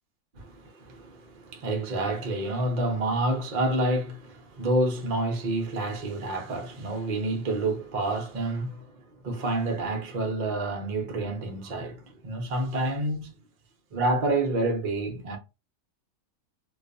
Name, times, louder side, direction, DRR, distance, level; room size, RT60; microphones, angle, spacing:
voice 1, 0.4-13.4 13.9-15.4, right 2 dB, 70° right, 0.4 m, -28 dB
2.5 x 2.3 x 2.5 m
omnidirectional pair, 1.6 m